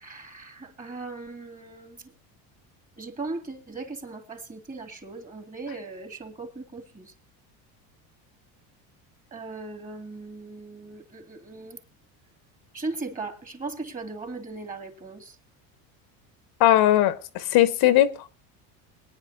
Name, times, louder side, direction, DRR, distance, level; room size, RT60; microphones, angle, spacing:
voice 1, 0.0-2.0 3.0-7.0 9.3-11.8 12.7-15.2, right 3 dB, 20° right, 2.9 m, -38 dB
voice 2, 16.6-18.3, left 13 dB, 60° left, 1.3 m, -19 dB
22.5 x 10.5 x 2.8 m
supercardioid pair, 120°, 42 cm